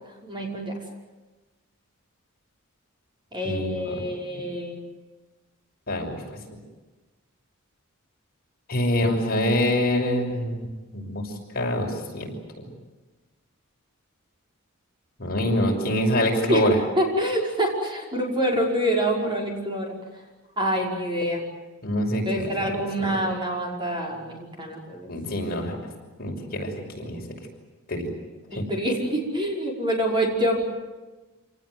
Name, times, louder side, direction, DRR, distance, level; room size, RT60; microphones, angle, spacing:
voice 1, 0.2-0.7 3.3-4.8 16.5-16.7 17.0-20.0 20.6-21.4 22.2-25.1 28.5-30.6, equal, 25° right, 0 dB, 5.5 m, -26 dB
voice 2, 3.4-4.0 4.3-4.4 5.9-6.4 8.7-12.7 15.2-16.8 21.8-22.7 23.0-23.2 25.1-25.8 26.2-27.2 27.9-28.1 28.5-28.6, left 1 dB, 45° left, 0 dB, 6.1 m, -26 dB
28.0 x 19.0 x 9.6 m, 1.2 s
head